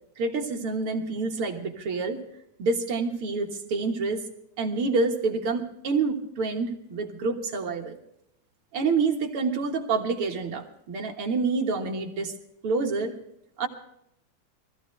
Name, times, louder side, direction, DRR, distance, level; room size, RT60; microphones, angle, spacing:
voice 1, 0.2-2.2 2.6-4.2 4.6-8.0 8.7-12.3 12.6-13.1 13.6-13.7, right 4 dB, 50° right, 2 dB, 2.0 m, -27 dB
23.0 x 15.5 x 3.2 m, 0.78 s
omnidirectional pair, 3.6 m